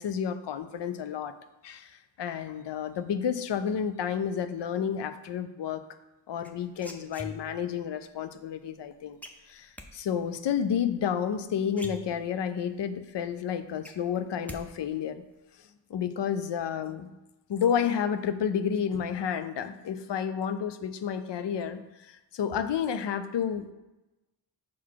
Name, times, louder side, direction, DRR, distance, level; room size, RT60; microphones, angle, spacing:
voice 1, 0.0-1.3 1.6-5.8 6.3-9.2 9.5-15.2 15.6-17.2 17.5-23.7, left 8 dB, 70° left, 11 dB, 0.5 m, -31 dB
sound 1, 6.4-7.7 9.2-9.9 11.3-11.4 11.7-12.5 13.0-13.1 13.4-14.6 14.9-15.4, left 1 dB, 5° left, 0.5 m, -43 dB
6.0 x 3.9 x 4.6 m, 1.0 s
wide cardioid pair, 90°, 45 cm